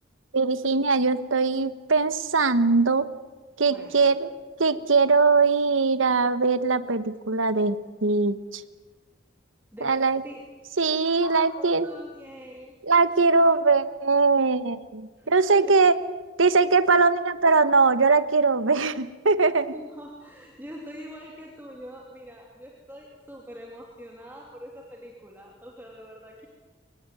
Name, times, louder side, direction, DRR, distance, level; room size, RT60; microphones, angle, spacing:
voice 1, 0.3-3.1 3.6-4.3 4.6-8.6 9.8-10.2 10.8-11.9 12.9-15.9 16.4-19.7, right 4 dB, 85° right, 13 dB, 1.2 m, -21 dB
voice 2, 3.7-4.0 9.7-12.8 15.2-15.3 15.7-15.9 19.5-26.5, equal, 10° right, -1 dB, 2.8 m, -44 dB
24.0 x 19.0 x 9.4 m, 1.3 s
head